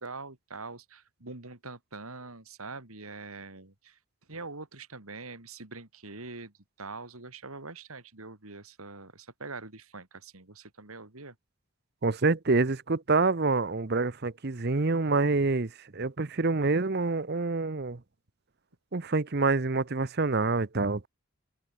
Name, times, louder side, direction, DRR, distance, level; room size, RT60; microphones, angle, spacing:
voice 1, 0.0-4.0 4.3-6.5 6.8-11.3, right 3 dB, 75° right, 3.1 m, -43 dB
voice 2, 12.0-18.0 18.9-21.1, right 3 dB, 45° right, 0.8 m, -27 dB
head